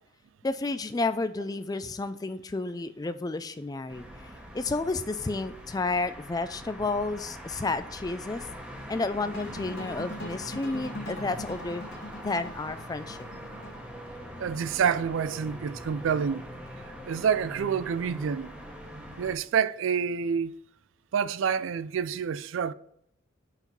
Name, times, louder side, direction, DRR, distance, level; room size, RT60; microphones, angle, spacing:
voice 1, 0.4-4.1 4.5-8.5 8.9-11.8 12.2-13.2, left 3 dB, 20° left, 0.3 m, -31 dB
sound 1, 3.9-19.4, equal, 5° right, 1.1 m, -43 dB
sound 2, 9.3-14.4, left 1 dB, 50° left, 1.3 m, -41 dB
voice 2, 14.4-16.5 17.1-18.5 19.2-20.6 21.1-22.7, right 7 dB, 75° right, 0.4 m, -28 dB
5.8 x 4.6 x 5.2 m
head